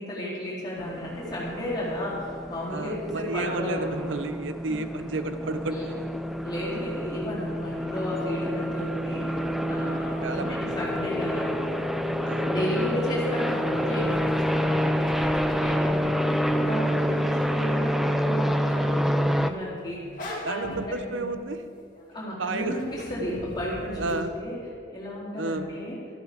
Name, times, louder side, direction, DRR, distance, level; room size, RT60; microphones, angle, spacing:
voice 1, 0.0-4.3 5.7-5.8 6.4-11.5 12.5-21.4 22.1-24.6 24.9-26.0, left 1 dB, 20° left, -7 dB, 4.0 m, -33 dB
sound 1, 0.8-19.5, equal, ahead, 0.4 m, -28 dB
voice 2, 2.7-6.1 9.8-10.8 12.2-12.5 20.4-21.6 22.4-22.8 24.0-24.3 25.4-25.7, right 2 dB, 80° right, 9 dB, 0.8 m, -32 dB
sound 2, 9.3-11.9 13.3-22.1 22.6-24.2, equal, 45° left, 2.5 m, -43 dB
13.5 x 13.0 x 5.1 m, 2.2 s
head